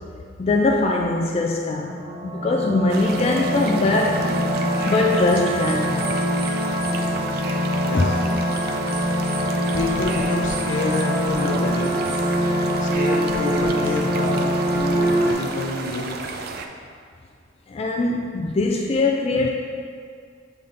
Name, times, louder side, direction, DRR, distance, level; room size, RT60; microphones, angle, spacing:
voice 1, 0.4-4.2 4.8-6.1 7.9-8.1 12.3-12.4 17.7-19.5, left 2 dB, 35° left, 0 dB, 0.3 m, -22 dB
sound 1, 1.9-15.3, equal, 30° right, 0.8 m, -24 dB
sound 2, 2.9-16.7, right 4 dB, 55° right, 0.4 m, -33 dB
voice 2, 7.8-8.4 9.7-12.1 12.8-16.1, left 2 dB, 80° left, 0 dB, 0.7 m, -28 dB
6.8 x 3.6 x 3.8 m, 2.2 s
head